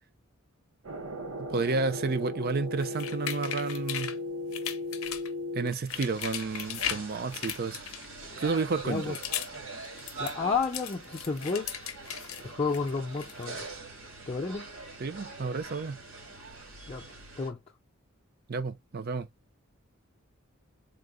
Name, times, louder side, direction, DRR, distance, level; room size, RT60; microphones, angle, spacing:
sound 1, 0.8-5.7, left 1 dB, 90° right, 0.8 m, -36 dB
voice 1, 1.4-4.1 5.5-7.8 8.4-9.2 15.0-16.0 18.5-19.3, right 4 dB, 45° right, 0.5 m, -31 dB
sound 2, 2.8-4.2 4.5-5.3 5.7-7.0 7.3-8.3 8.8-9.6 9.8-12.4 12.7-13.7, left 10 dB, 80° left, 0.6 m, -37 dB
sound 3, 5.9-17.5, right 3 dB, 75° right, 1.5 m, -43 dB
voice 2, 10.2-11.7 12.4-13.7 14.3-14.7 16.9-17.0 17.4-17.6, left 4 dB, 30° left, 0.5 m, -31 dB
3.7 x 2.1 x 3.8 m
head